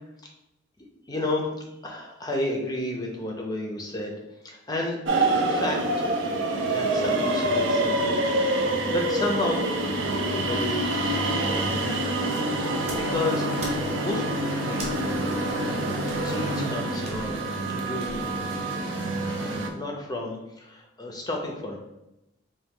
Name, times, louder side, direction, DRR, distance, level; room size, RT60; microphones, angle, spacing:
voice 1, 1.1-4.2 4.4-5.0 5.3-6.1 6.6-8.1 8.5-9.6 10.4-12.0 12.9-14.9 15.5-15.8 16.2-18.4 19.4-21.8, left 1 dB, 20° left, 0 dB, 0.5 m, -32 dB
sound 1, 5.1-19.7, right 1 dB, 75° right, 0.6 m, -26 dB
sound 2, 12.2-18.6, right 1 dB, 35° right, 0.8 m, -43 dB
3.9 x 2.6 x 3.6 m, 0.90 s
head